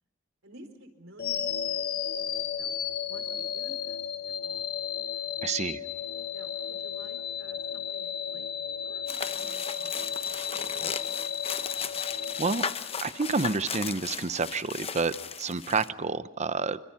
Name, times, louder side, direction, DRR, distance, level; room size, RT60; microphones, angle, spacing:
voice 1, 0.4-2.3 2.6-2.7 3.1-4.7 6.3-10.5 11.0-11.2, right 1 dB, 75° right, 6 dB, 4.4 m, -53 dB
sound 1, 1.2-13.3, left 8 dB, 50° left, 1.3 m, -34 dB
voice 2, 5.4-5.8 12.4-12.6 13.0-16.8, right 4 dB, 35° right, 13 dB, 0.8 m, -29 dB
sound 2, 9.1-15.9, left 6 dB, 30° left, 0.8 m, -36 dB
27.0 x 25.5 x 5.7 m, 0.86 s
head